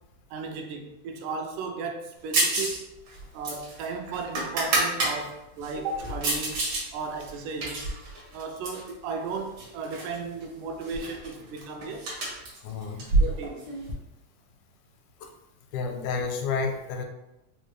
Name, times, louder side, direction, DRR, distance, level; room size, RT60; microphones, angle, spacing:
voice 1, 0.3-2.9 3.3-6.6 6.9-7.9 8.3-12.1 13.2-13.7, right 4 dB, 90° right, 3 dB, 2.1 m, -35 dB
sound 1, 2.3-2.8 3.1-5.1 5.6-6.8 7.2-8.9 9.6-10.2 10.4-10.5 10.8-13.9, right 2 dB, 65° right, 1.3 m, -28 dB
voice 2, 12.6-13.1 15.2-15.3 15.7-17.1, left 5 dB, 85° left, 4 dB, 2.0 m, -30 dB
5.0 x 2.1 x 3.1 m, 0.90 s
omnidirectional pair, 3.5 m